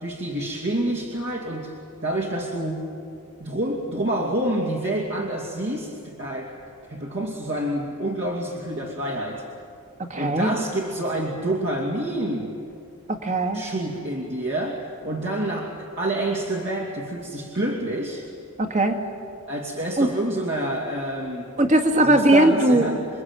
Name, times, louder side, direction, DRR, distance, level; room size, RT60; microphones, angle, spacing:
voice 1, 0.0-2.9 3.4-6.6 6.9-9.4 10.1-12.5 13.5-18.2 19.5-21.6 21.9-23.1, right 1 dB, 55° right, -2 dB, 2.7 m, -28 dB
voice 2, 10.1-10.5 13.1-13.6 18.6-19.0 20.0-20.1 21.6-22.9, right 1 dB, 35° right, 5 dB, 2.0 m, -19 dB
28.5 x 22.5 x 9.2 m, 2.5 s
head